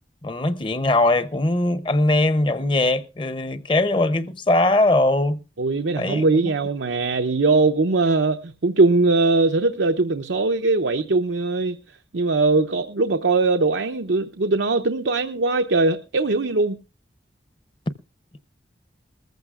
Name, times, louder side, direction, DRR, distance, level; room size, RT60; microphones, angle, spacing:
voice 1, 0.2-5.4 6.0-6.5, left 2 dB, 25° left, 0.6 m, -21 dB
voice 2, 5.6-11.8 12.1-16.8, right 3 dB, 90° right, 0.7 m, -21 dB
20.5 x 14.5 x 2.4 m
head